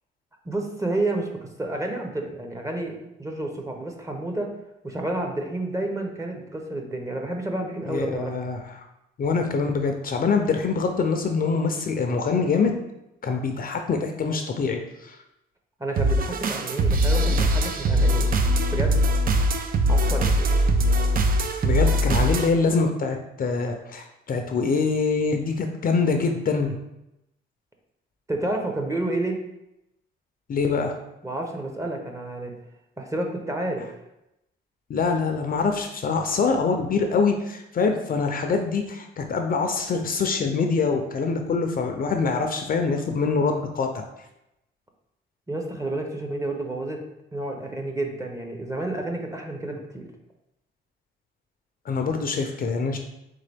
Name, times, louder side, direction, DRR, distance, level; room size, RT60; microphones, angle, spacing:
voice 1, 0.4-4.5 4.8-8.4 15.8-18.3 18.7-19.0 19.9-20.3 28.3-29.4 31.2-32.5 33.0-33.9 45.5-47.0 47.3-50.1, right 2 dB, 15° right, 2 dB, 0.8 m, -30 dB
voice 2, 7.9-8.6 9.2-12.7 13.2-15.2 21.6-26.8 30.5-31.0 34.9-44.0 51.9-53.0, left 4 dB, 45° left, 4 dB, 0.5 m, -24 dB
sound 1, 16.0-22.5, right 1 dB, 45° right, 0.5 m, -21 dB
3.7 x 3.7 x 3.4 m, 0.87 s
cardioid pair, 90°, 20 cm